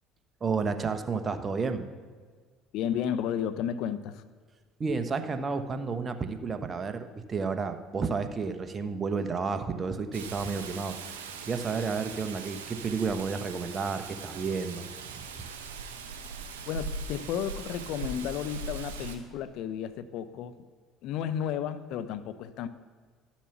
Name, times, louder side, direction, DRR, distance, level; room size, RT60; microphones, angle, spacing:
voice 1, 0.4-1.8 4.8-11.0 11.5-14.9 15.1-15.2, right 5 dB, 35° right, 9 dB, 1.0 m, -31 dB
voice 2, 2.7-4.2 16.7-20.7 21.0-22.7, left 9 dB, 65° left, 13 dB, 0.5 m, -33 dB
Rain, 10.1-19.2, right 4 dB, 85° right, 1.0 m, -40 dB
12.0 x 7.2 x 5.9 m, 1.6 s
hypercardioid pair, 65°, 0 cm